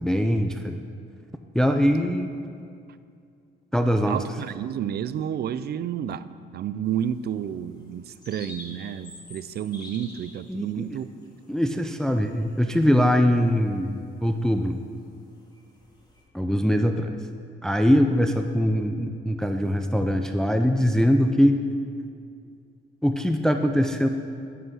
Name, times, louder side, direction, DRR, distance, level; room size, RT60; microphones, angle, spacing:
voice 1, 0.0-0.8 1.5-2.3 3.7-4.2 10.5-10.9 11.5-14.8 16.3-17.1 17.6-21.6 23.0-24.1, equal, 5° left, 6 dB, 0.4 m, -22 dB
voice 2, 4.1-6.3 6.5-11.1, right 9 dB, 55° right, 15 dB, 0.4 m, -30 dB
sound 1, 6.9-16.2, left 1 dB, 20° left, 2.0 m, -50 dB
9.3 x 5.7 x 6.3 m, 2.3 s
cardioid pair, 90°, 20 cm